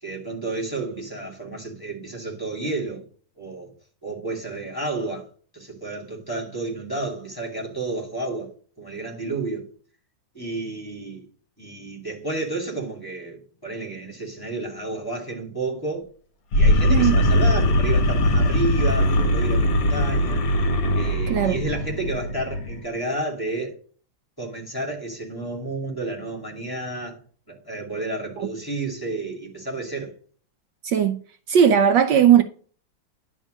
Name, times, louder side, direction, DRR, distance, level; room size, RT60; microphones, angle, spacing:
voice 1, 0.0-3.0 3.4-3.7 4.0-5.3 5.5-8.5 8.8-9.7 10.3-11.3 11.6-16.1 16.5-20.4 20.9-23.8 24.4-27.2 27.5-30.1, right 2 dB, 10° left, 2.6 m, -31 dB
sound 1, 16.5-22.8, left 1 dB, 55° left, 1.4 m, -20 dB
voice 2, 30.8-31.2 31.5-32.4, right 8 dB, 70° right, 1.3 m, -17 dB
10.5 x 3.6 x 6.4 m
omnidirectional pair, 2.1 m